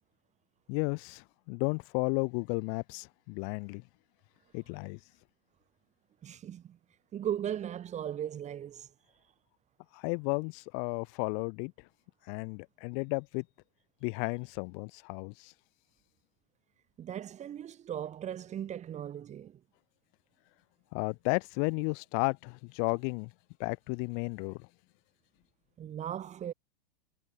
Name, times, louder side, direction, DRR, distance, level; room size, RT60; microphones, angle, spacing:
voice 1, 0.7-3.8 4.5-5.0 9.9-11.7 12.3-13.4 14.0-15.5 20.9-23.3 23.6-24.7, left 40 dB or more, 45° left, 4.9 m, -33 dB
voice 2, 6.2-6.8 7.1-8.9 17.0-19.6 25.8-26.5, right 10 dB, 25° right, 3.2 m, -37 dB
hypercardioid pair, 125°, 29 cm